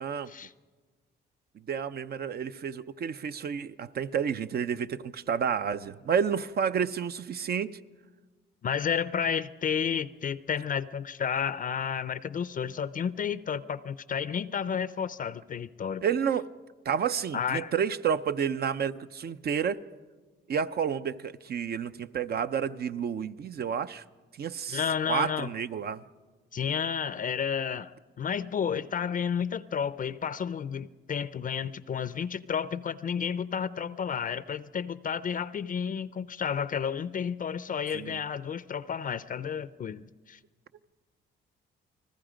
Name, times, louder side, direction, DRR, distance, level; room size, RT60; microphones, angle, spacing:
voice 1, 0.0-0.3 1.7-7.8 16.0-16.5 16.9-19.8 20.5-24.0 24.4-24.8 25.1-26.0 37.9-38.2, right 7 dB, 50° right, 0.7 m, -30 dB
voice 2, 8.6-16.0 17.3-17.7 24.7-25.5 26.5-27.9 28.2-40.4, left 7 dB, 45° left, 0.5 m, -31 dB
29.5 x 20.0 x 5.1 m
cardioid pair, 90°, 20 cm